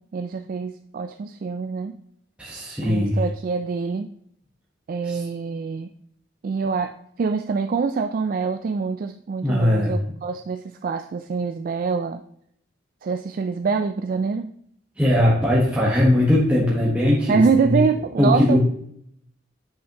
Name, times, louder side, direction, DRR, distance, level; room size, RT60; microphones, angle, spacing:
voice 1, 0.1-2.0 2.8-4.1 4.9-5.9 6.4-12.2 13.0-14.5 17.3-18.6, right 5 dB, 50° right, 7 dB, 0.3 m, -25 dB
voice 2, 2.4-3.2 5.0-5.2 9.4-9.9 15.0-17.8 18.2-18.6, left 1 dB, 5° right, -7 dB, 1.2 m, -19 dB
7.9 x 6.6 x 2.9 m, 0.70 s
head